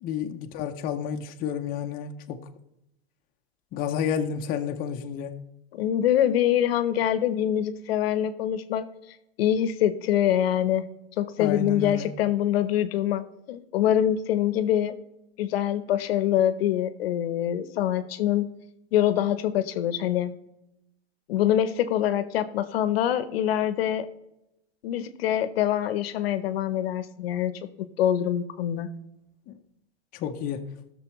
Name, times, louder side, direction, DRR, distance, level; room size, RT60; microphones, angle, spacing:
voice 1, 0.0-2.4 3.7-5.3 11.4-12.1 29.5-29.6 30.1-30.7, left 7 dB, 30° left, 0.6 m, -30 dB
voice 2, 5.7-8.9 9.4-10.8 11.2-15.0 15.4-18.5 18.9-20.3 21.3-24.1 24.8-27.5 28.0-28.9, left 11 dB, 70° left, 0.8 m, -24 dB
15.0 x 6.7 x 3.0 m
hypercardioid pair, 135°, 32 cm